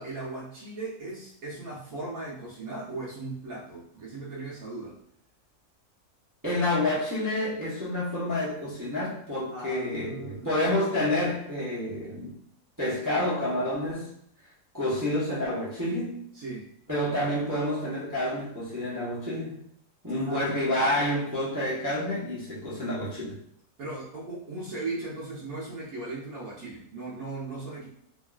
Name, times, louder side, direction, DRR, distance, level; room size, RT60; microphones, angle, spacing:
voice 1, 0.0-5.0 9.5-10.5 16.3-16.7 20.2-20.5 23.8-27.9, right 2 dB, 70° right, -7 dB, 1.3 m, -37 dB
voice 2, 6.4-12.4 12.8-14.1 14.7-16.2 16.9-19.6 20.0-23.4, left 1 dB, 20° right, -8 dB, 0.5 m, -29 dB
3.5 x 2.4 x 2.3 m, 0.70 s
omnidirectional pair, 1.6 m